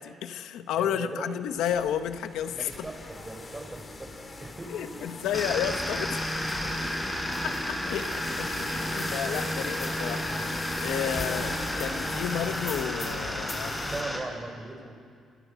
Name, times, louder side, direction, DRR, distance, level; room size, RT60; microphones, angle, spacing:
voice 1, 0.0-2.9 4.7-6.2 7.4-10.4 10.8-13.8, left 9 dB, 85° left, 8 dB, 1.5 m, -32 dB
voice 2, 0.7-1.4 2.5-5.3 6.4-7.2 12.2-12.3 13.7-14.9, right 2 dB, 20° right, 5 dB, 4.9 m, -40 dB
sound 1, 1.5-14.0, left 2 dB, 35° left, 4.5 m, -39 dB
sound 2, 5.3-14.2, equal, 10° left, 6.9 m, -32 dB
29.0 x 27.5 x 6.5 m, 2.2 s
cardioid pair, 90°, 0 cm